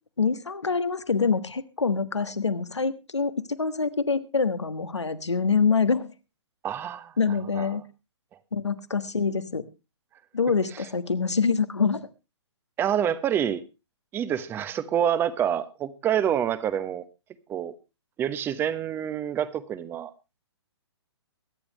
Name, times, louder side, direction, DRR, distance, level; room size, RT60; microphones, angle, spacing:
voice 1, 0.2-6.1 7.2-7.8 8.5-9.6 10.3-12.1, left 5 dB, 75° left, 13 dB, 1.4 m, -25 dB
voice 2, 6.6-7.1 7.5-7.8 10.7-10.9 12.8-13.6 14.1-17.0 17.5-17.8 18.2-20.1, right 9 dB, 15° right, 15 dB, 0.9 m, -27 dB
23.0 x 9.9 x 3.1 m, 0.27 s
figure-of-eight pair, 125°, 15 cm